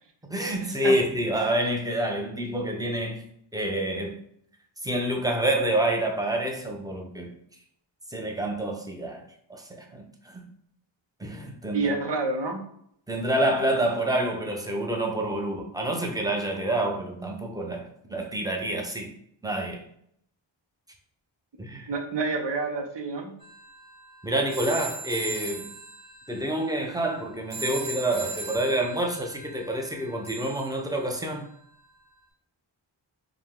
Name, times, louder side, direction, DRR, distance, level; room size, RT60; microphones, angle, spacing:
voice 1, 0.3-3.2 3.5-4.2 4.8-7.3 8.1-9.2 9.5-10.4 11.2-11.9 13.1-19.1 19.4-19.8 21.6-21.9 24.2-25.7 26.3-31.5, right 1 dB, 10° right, 2 dB, 0.7 m, -28 dB
voice 2, 11.7-12.6 21.9-23.3, right 3 dB, 65° right, 3 dB, 0.9 m, -28 dB
sound 1, 23.4-31.5, right 4 dB, 45° right, 1.6 m, -39 dB
4.9 x 2.2 x 3.7 m, 0.68 s
wide cardioid pair, 100°, 46 cm